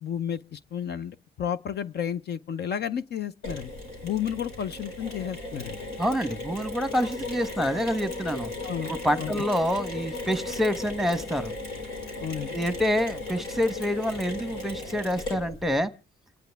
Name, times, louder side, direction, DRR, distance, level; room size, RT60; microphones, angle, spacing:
voice 1, 0.0-3.7 4.0-5.8 8.6-8.9 9.2-9.4 12.2-12.5, left 9 dB, 55° left, 0.6 m, -32 dB
Mechanisms, 3.4-15.8, left 2 dB, 90° left, 5.1 m, -36 dB
voice 2, 6.0-8.5 8.8-11.5 12.5-15.9, equal, ahead, 1.0 m, -27 dB
27.0 x 10.5 x 3.4 m
cardioid pair, 90°, 20 cm